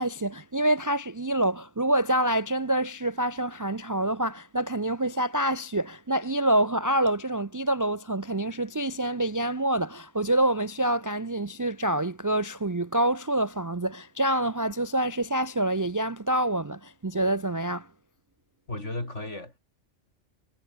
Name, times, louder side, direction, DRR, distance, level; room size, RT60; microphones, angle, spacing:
voice 1, 0.0-17.9, right 1 dB, 30° right, 0.4 m, -26 dB
voice 2, 18.7-19.6, left 2 dB, 80° left, 6.5 m, -34 dB
omnidirectional pair, 1.2 m